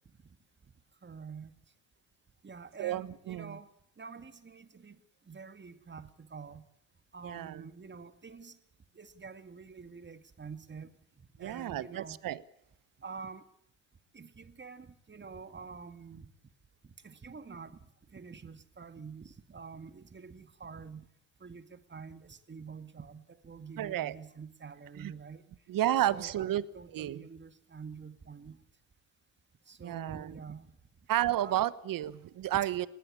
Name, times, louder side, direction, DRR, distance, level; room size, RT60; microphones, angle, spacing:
voice 1, 1.0-1.5 2.4-3.7 4.0-5.0 5.3-6.7 7.1-8.6 8.9-12.2 13.0-13.4 14.1-16.3 16.8-17.8 18.1-21.1 21.4-25.4 26.0-28.6 29.7-30.7 31.4-31.7, right 5 dB, 25° right, 11 dB, 2.1 m, -47 dB
voice 2, 2.8-3.6 7.2-7.6 11.4-12.4 23.8-24.2 25.0-25.1 25.7-26.6 26.9-27.3 29.8-30.3 31.1-32.9, right 13 dB, 50° right, 18 dB, 1.2 m, -32 dB
20.0 x 19.0 x 8.6 m, 0.72 s
hypercardioid pair, 60°, 44 cm